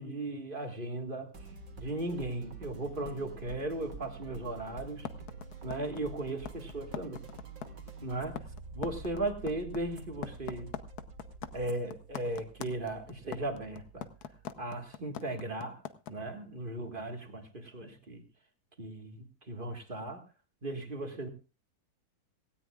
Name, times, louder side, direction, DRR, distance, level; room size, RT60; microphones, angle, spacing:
voice 1, 0.0-1.3 1.8-5.1 5.6-7.2 8.0-8.4 8.7-10.7 11.5-14.1 14.6-15.8 16.1-18.2 18.8-19.2 19.5-20.2 20.6-21.3, right 2 dB, 35° right, 4 dB, 2.0 m, -37 dB
sound 1, 1.3-14.7, right 4 dB, 60° right, 2.3 m, -48 dB
sound 2, 5.0-16.1, left 9 dB, 80° left, 1.4 m, -41 dB
18.0 x 17.0 x 2.4 m, 0.31 s
omnidirectional pair, 1.6 m